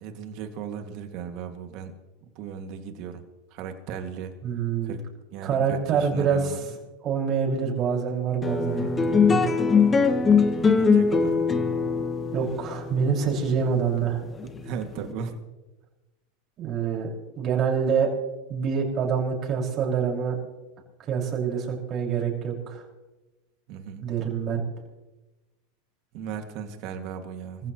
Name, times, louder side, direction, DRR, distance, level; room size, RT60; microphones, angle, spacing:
voice 1, 0.0-2.0 2.2-3.2 3.5-4.3 4.8-5.0 5.3-6.6 10.6-11.5 14.4-15.4 23.7-24.0 26.1-27.6, right 7 dB, 55° right, 6 dB, 2.2 m, -36 dB
voice 2, 4.4-5.0 5.4-6.6 7.0-9.4 12.3-14.2 16.6-18.1 18.5-20.4 21.1-22.8 24.0-24.6 27.6-27.7, right 6 dB, 40° right, -1 dB, 5.8 m, -26 dB
sound 1, 8.4-15.1, left 5 dB, 20° left, 1.4 m, -22 dB
25.0 x 15.5 x 3.1 m, 1.1 s
hypercardioid pair, 100°, 0 cm